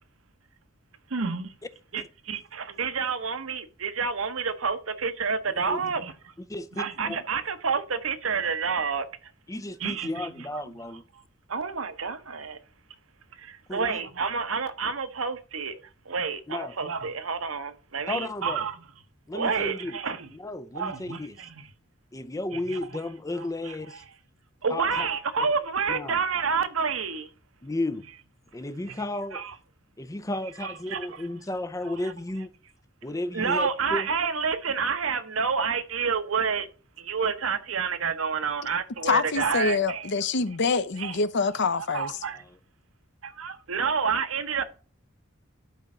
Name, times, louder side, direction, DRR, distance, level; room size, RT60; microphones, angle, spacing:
voice 1, 1.1-1.5 1.9-6.1 6.8-9.1 9.8-10.3 11.5-12.6 13.4-15.8 16.1-18.8 19.3-20.3 20.7-21.7 22.5-22.8 23.4-24.0 24.6-27.3 28.9-29.0 29.3-29.5 30.6-31.1 33.3-36.7 37.0-40.1 41.0-41.2 41.7-42.3 43.4-44.6, right 5 dB, 75° right, 1.0 m, -29 dB
voice 2, 6.5-7.2 9.5-11.0 13.7-14.0 16.5-16.8 18.1-18.7 19.3-20.0 20.3-21.4 22.1-23.9 24.7-25.1 25.4-25.5 25.9-26.2 27.6-28.1 28.5-29.4 30.0-32.5 33.0-34.1, left 1 dB, 15° left, 0.6 m, -33 dB
voice 3, 39.0-42.1, left 4 dB, 60° left, 0.7 m, -25 dB
11.5 x 4.4 x 3.8 m
head